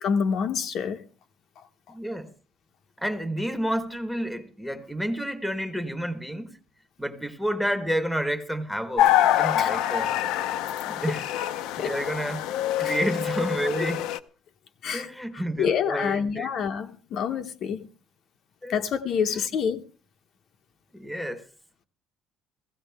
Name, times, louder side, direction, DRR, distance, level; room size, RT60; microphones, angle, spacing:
voice 1, 0.0-1.1 9.6-9.7 11.8-11.9 12.8-13.0 14.8-15.1 15.6-17.9 18.7-19.8, left 7 dB, 45° left, 0.8 m, -27 dB
voice 2, 1.9-2.3 3.0-6.6 7.0-9.1 9.4-10.1 10.9-11.2 11.8-12.5 12.8-14.1 14.9-16.5 18.6-18.8 19.2-19.5 20.9-21.4, equal, ahead, 1.0 m, -30 dB
sound 1, 9.0-14.2, left 12 dB, 80° left, 0.6 m, -25 dB
16.5 x 16.0 x 3.4 m
cardioid pair, 180°, 0 cm